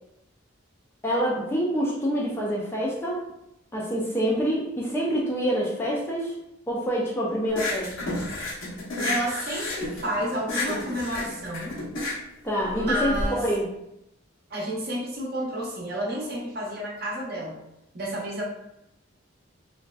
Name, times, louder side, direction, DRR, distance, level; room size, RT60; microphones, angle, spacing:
voice 1, 1.0-3.3 3.7-6.4 6.7-7.9 12.4-13.7, equal, 10° left, -4 dB, 0.4 m, -26 dB
sound 1, 7.5-13.2, left 2 dB, 80° left, 0.9 m, -31 dB
voice 2, 9.0-11.8 12.7-13.4 14.5-17.6 17.9-18.4, right 1 dB, 50° right, -3 dB, 0.7 m, -30 dB
3.0 x 2.5 x 2.3 m, 0.84 s
head